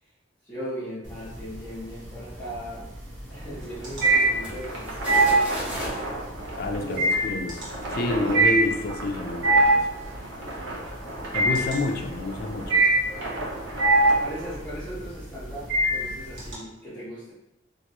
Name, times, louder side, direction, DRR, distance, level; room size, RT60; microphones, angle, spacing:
voice 1, 0.4-2.9 3.3-5.8 6.7-7.2 7.9-8.5 11.3-11.7 14.2-17.3, equal, 10° left, -14 dB, 0.9 m, -38 dB
sound 1, 1.0-1.7 2.0-16.5, right 2 dB, 70° right, 1.0 m, -22 dB
sound 2, 3.3-14.5, right 1 dB, 90° right, 0.7 m, -37 dB
sound 3, 3.7-6.1 6.8-7.0, equal, 10° right, 1.2 m, -37 dB
voice 2, 6.6-7.6 7.9-9.9 11.3-12.8, left 2 dB, 50° left, 3 dB, 0.4 m, -29 dB
2.9 x 2.5 x 2.8 m, 0.90 s
head